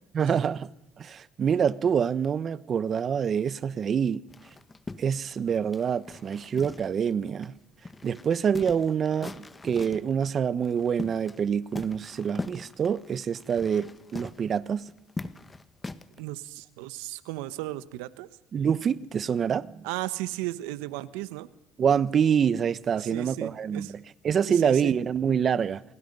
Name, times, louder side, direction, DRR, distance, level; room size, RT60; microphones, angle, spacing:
voice 1, 0.1-0.7 1.0-4.2 5.0-7.5 8.0-14.8 18.5-19.8 21.8-24.0 24.2-25.8, right 7 dB, 45° right, 1.0 m, -26 dB
sound 1, 4.3-7.1 7.4-7.5 7.8-10.1 10.6-11.5 11.7-16.2, left 3 dB, 20° left, 1.4 m, -41 dB
voice 2, 16.2-18.3 19.8-21.5 22.9-23.9 24.5-25.0, right 17 dB, 90° right, 1.2 m, -35 dB
29.0 x 24.0 x 5.5 m
supercardioid pair, 85°, 0 cm